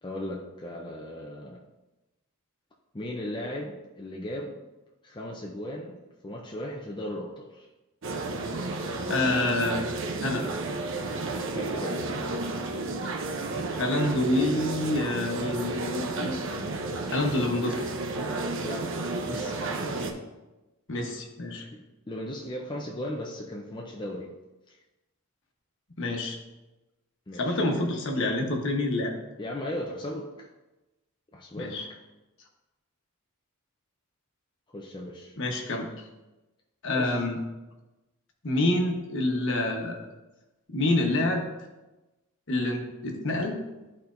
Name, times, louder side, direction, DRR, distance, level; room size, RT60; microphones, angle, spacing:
voice 1, 0.0-1.6 2.9-4.6 5.0-7.7 11.5-12.2 18.6-18.9 19.2-19.6 21.7-24.4 24.7-24.8 27.3-27.6 29.4-30.5 31.3-32.0 34.7-35.4 36.9-37.2, left 1 dB, 20° left, -1 dB, 0.6 m, -37 dB
sound 1, 8.0-20.1, right 2 dB, 60° right, 0.7 m, -32 dB
voice 2, 9.1-9.8 10.2-10.4 13.7-16.4 17.1-17.9 20.9-21.7 26.0-26.4 27.3-29.1 31.5-31.8 35.4-35.9 36.8-37.4 38.4-40.0 40.7-41.4 42.5-43.6, left 2 dB, 55° left, 2 dB, 1.2 m, -27 dB
12.5 x 4.3 x 2.6 m, 1.1 s
head